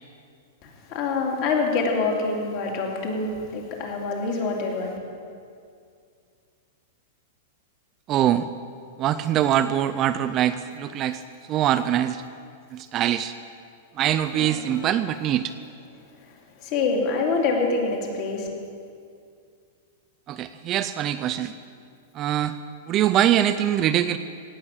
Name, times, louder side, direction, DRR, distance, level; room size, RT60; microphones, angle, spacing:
voice 1, 0.6-5.0 14.4-14.7 16.6-18.5, left 3 dB, 40° left, 0 dB, 2.7 m, -26 dB
voice 2, 8.1-8.5 9.0-11.2 11.5-12.2 12.7-13.3 14.0-15.5 20.3-21.5 22.1-22.6 22.9-24.2, right 11 dB, 25° right, 11 dB, 0.4 m, -23 dB
17.5 x 6.4 x 8.7 m, 2.3 s
supercardioid pair, 160°, 0 cm